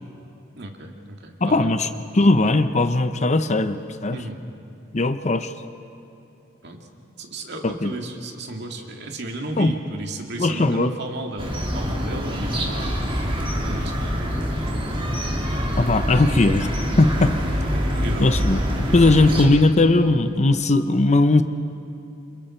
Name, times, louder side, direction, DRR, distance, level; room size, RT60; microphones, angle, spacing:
voice 1, 0.6-1.7 4.1-4.4 6.6-6.9 7.2-13.2 13.6-14.5 17.4-18.5, right 2 dB, 60° right, 2 dB, 2.3 m, -34 dB
voice 2, 1.4-1.9 2.1-4.2 4.9-5.5 7.6-7.9 9.6-9.7 10.4-10.9 15.8-17.3 18.2-21.4, left 2 dB, 35° left, 10 dB, 0.8 m, -19 dB
sound 1, 11.4-19.5, equal, 30° right, 2.8 m, -25 dB
29.0 x 27.5 x 4.5 m, 2.8 s
head